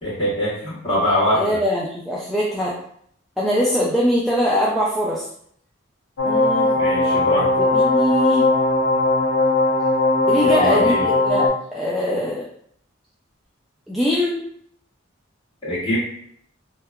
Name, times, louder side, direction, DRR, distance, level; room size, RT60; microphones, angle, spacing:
voice 1, 0.0-1.6 6.8-7.5 10.4-11.0 15.6-16.0, left 1 dB, 25° left, -10 dB, 1.5 m, -23 dB
voice 2, 1.3-2.8 3.4-5.3 6.2-6.7 7.6-8.5 10.3-12.5 13.9-14.4, equal, ahead, -7 dB, 0.3 m, -22 dB
sound 1, 6.2-11.5, left 2 dB, 80° left, 0.6 m, -18 dB
2.8 x 2.1 x 2.3 m, 0.65 s
head